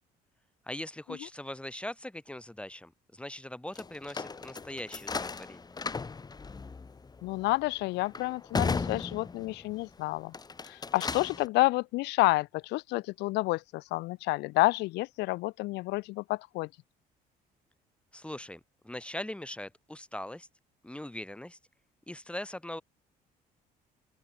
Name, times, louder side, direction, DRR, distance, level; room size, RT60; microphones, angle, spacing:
voice 1, 0.7-5.8 18.1-20.5 20.8-21.6 22.1-22.8, left 1 dB, 5° left, 2.2 m, -41 dB
sound 1, 3.8-9.8 10.2-11.5, left 4 dB, 25° left, 2.6 m, -36 dB
voice 2, 7.2-10.3 10.6-16.7, left 21 dB, 90° left, 1.6 m, -29 dB
open air
cardioid pair, 110°, 17 cm